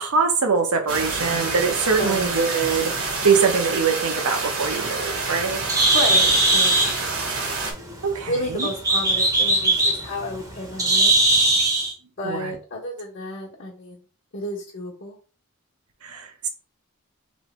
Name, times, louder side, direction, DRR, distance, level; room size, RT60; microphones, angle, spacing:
voice 1, 0.0-2.9 3.2-5.6 8.0-8.7 12.2-12.5 16.0-16.5, right 5 dB, 80° right, 0.9 m, -23 dB
sound 1, 0.9-7.7, right 3 dB, 60° right, 1.1 m, -28 dB
voice 2, 2.0-2.3 5.9-6.9 8.3-11.2 12.2-14.0 14.3-15.2, left 1 dB, 55° left, 1.1 m, -31 dB
Bird, 4.6-11.9, right 2 dB, 15° right, 0.7 m, -21 dB
3.2 x 3.1 x 4.3 m
head